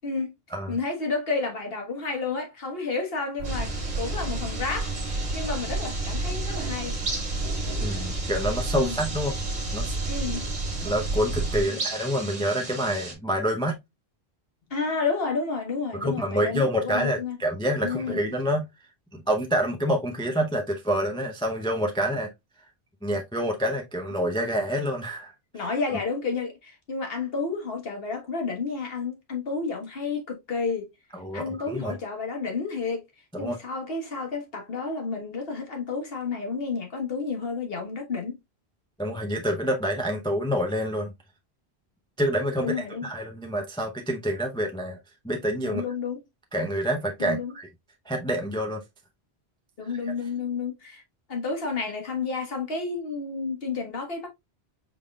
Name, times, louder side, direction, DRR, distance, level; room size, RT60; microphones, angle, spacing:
voice 1, 0.0-0.3 0.7-7.0 8.7-9.1 10.1-10.4 11.7-11.8 14.7-17.4 17.8-18.2 25.5-30.9 31.3-33.0 33.4-38.4 42.6-43.1 45.6-46.2 47.2-47.5 49.8-51.0 51.3-54.3, left 4 dB, 65° left, 1.4 m, -31 dB
sound 1, 3.4-13.1, right 3 dB, 40° right, 1.2 m, -36 dB
sound 2, 3.4-11.6, right 2 dB, 70° right, 1.0 m, -31 dB
voice 2, 7.8-9.4 9.7-10.1 10.8-13.8 15.9-18.7 19.1-22.3 23.0-25.6 31.1-31.9 33.3-33.6 39.0-41.1 42.2-45.0 45.2-45.8 46.5-47.7 48.1-48.8, equal, 5° left, 0.4 m, -27 dB
5.0 x 3.7 x 2.2 m
omnidirectional pair, 1.1 m